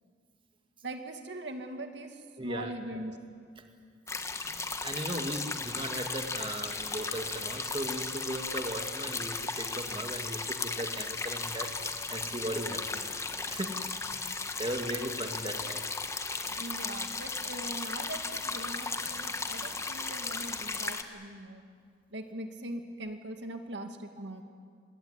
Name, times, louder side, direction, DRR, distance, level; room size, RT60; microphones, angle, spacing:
voice 1, 0.8-3.2 16.6-21.7 22.1-24.4, right 1 dB, 75° right, 5 dB, 2.2 m, -41 dB
voice 2, 2.4-2.7 4.2-13.1 13.5-13.9 14.6-15.8 16.2-16.6, right 1 dB, 30° right, 5 dB, 1.7 m, -38 dB
sound 1, 4.1-21.0, left 3 dB, 15° left, 1.3 m, -36 dB
25.5 x 20.0 x 9.7 m, 2.1 s
head